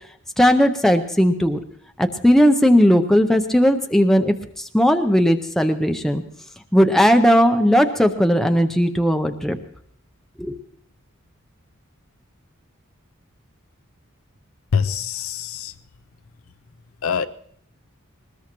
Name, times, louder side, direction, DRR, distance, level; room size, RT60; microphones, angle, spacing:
voice 1, 0.4-1.6 2.0-6.2 6.7-9.6 10.4-10.6, equal, ahead, 0.6 m, -17 dB
voice 2, 14.7-15.7 17.0-17.3, left 6 dB, 75° left, 0.5 m, -24 dB
21.0 x 19.5 x 3.0 m
head